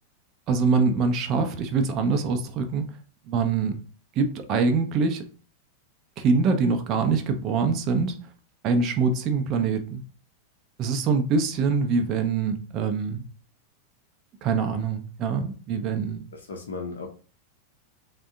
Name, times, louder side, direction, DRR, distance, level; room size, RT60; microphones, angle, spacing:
voice 1, 0.5-2.9 3.3-3.8 4.2-5.3 6.2-8.2 8.6-10.0 10.8-13.2 14.4-16.3, right 4 dB, 35° right, 6 dB, 0.5 m, -24 dB
voice 2, 16.3-17.1, left 4 dB, 65° left, 1 dB, 0.5 m, -35 dB
3.4 x 2.2 x 3.6 m, 0.38 s
figure-of-eight pair, 90°, 0 cm